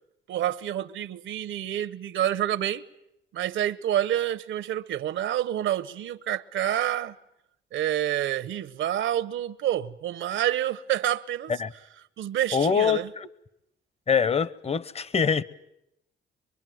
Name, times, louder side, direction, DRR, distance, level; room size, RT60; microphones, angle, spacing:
voice 1, 0.3-2.8 3.3-7.1 7.7-11.5 12.2-13.1, right 11 dB, 75° right, 1.0 m, -28 dB
voice 2, 12.5-13.3 14.1-15.4, left 6 dB, 30° left, 1.0 m, -24 dB
24.0 x 23.5 x 9.3 m
cardioid pair, 90°, 20 cm